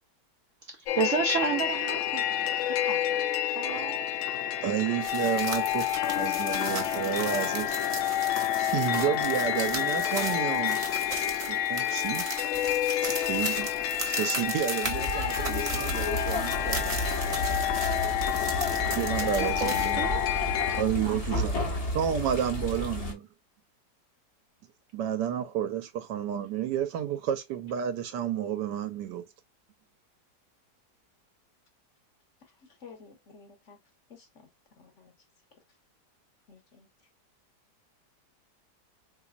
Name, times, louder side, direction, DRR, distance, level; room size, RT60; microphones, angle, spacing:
voice 1, 0.6-4.0 19.2-20.2 21.0-21.5, right 5 dB, 65° right, 0.7 m, -32 dB
sound 1, 0.9-20.8, left 11 dB, 75° left, 0.6 m, -29 dB
voice 2, 4.6-7.7 8.7-10.8 11.5-12.2 13.0-13.7 14.1-16.9 18.9-20.0 20.8-21.6 21.9-23.3 24.9-29.2, right 10 dB, 90° right, 1.3 m, -31 dB
sound 2, 5.0-19.9, right 2 dB, 30° right, 0.8 m, -37 dB
sound 3, 14.8-23.1, left 1 dB, 30° left, 0.8 m, -32 dB
voice 3, 32.4-33.8 34.1-34.5 34.8-35.1 36.5-36.9, left 5 dB, 50° left, 1.0 m, -52 dB
4.0 x 3.2 x 2.3 m
omnidirectional pair, 1.8 m